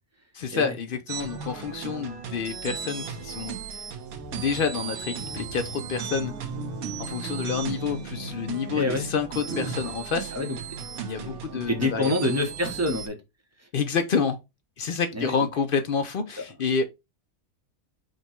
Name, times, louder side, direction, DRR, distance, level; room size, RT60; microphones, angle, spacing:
voice 1, 0.3-3.6 4.3-6.3 7.0-10.3 11.0-12.1 13.7-14.4 14.8-16.8, left 6 dB, 60° left, 0.6 m, -28 dB
sound 1, 1.1-13.1, right 7 dB, 85° right, 1.2 m, -37 dB
sound 2, 4.1-9.9, right 2 dB, 70° right, 1.4 m, -38 dB
voice 2, 8.7-9.1 10.3-10.8 11.2-11.4 11.7-13.2 13.6-13.7 15.1-15.5 16.4-16.5, left 2 dB, 15° right, 0.7 m, -27 dB
5.1 x 2.3 x 4.2 m
omnidirectional pair, 1.5 m